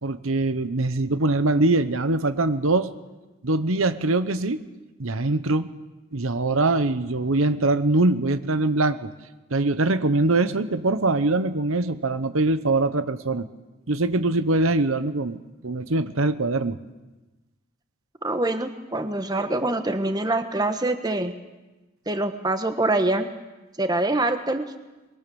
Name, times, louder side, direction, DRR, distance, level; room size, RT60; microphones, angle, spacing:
voice 1, 0.0-2.9 3.4-4.6 5.0-5.7 6.1-9.1 9.5-13.5 13.9-16.8, right 2 dB, 75° right, 11 dB, 1.0 m, -23 dB
voice 2, 18.2-21.3 22.1-23.3 23.8-24.7, right 2 dB, 20° right, 8 dB, 1.2 m, -24 dB
24.0 x 22.0 x 7.1 m, 1.1 s
head